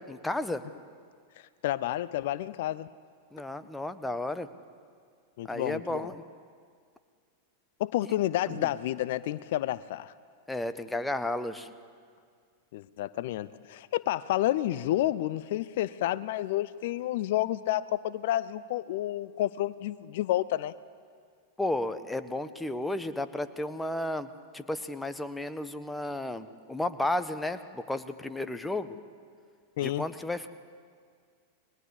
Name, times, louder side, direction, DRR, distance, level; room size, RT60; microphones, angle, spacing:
voice 1, 0.1-0.6 3.3-4.5 5.5-6.2 8.0-8.1 8.5-8.7 10.5-11.7 21.6-24.3 24.5-28.9 29.8-30.5, left 1 dB, 5° left, 10 dB, 1.4 m, -33 dB
voice 2, 1.6-2.9 5.4-6.1 7.8-10.1 12.7-20.7 29.8-30.0, left 14 dB, 55° left, 17 dB, 0.7 m, -30 dB
29.5 x 22.5 x 8.4 m, 2.1 s
figure-of-eight pair, 90°, 0 cm